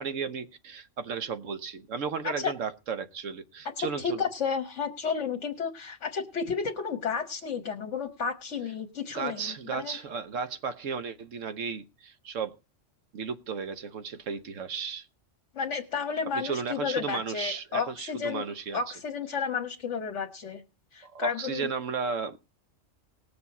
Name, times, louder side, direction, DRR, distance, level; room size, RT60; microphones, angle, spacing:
voice 1, 0.0-4.2 9.1-12.6 13.1-15.1 16.3-18.8 21.0-22.4, right 6 dB, 80° right, 1.3 m, -34 dB
voice 2, 3.8-10.0 15.5-18.4 18.7-20.6 20.9-21.7, left 6 dB, 65° left, 1.4 m, -32 dB
19.5 x 7.0 x 4.1 m
omnidirectional pair, 1.3 m